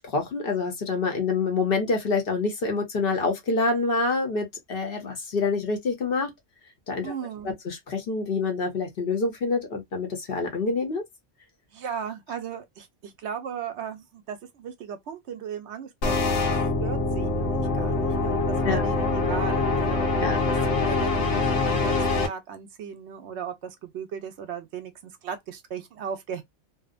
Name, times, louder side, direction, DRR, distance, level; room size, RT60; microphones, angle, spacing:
voice 1, 0.0-6.3 6.9-7.1 7.4-11.0 18.6-18.8 20.2-20.4, left 4 dB, 55° left, 0.9 m, -26 dB
voice 2, 7.0-7.5 11.7-20.6 20.9-21.9 22.2-26.4, right 7 dB, 70° right, 0.8 m, -37 dB
sound 1, 16.0-22.3, left 3 dB, 75° left, 1.1 m, -24 dB
2.7 x 2.0 x 2.4 m
omnidirectional pair, 1.3 m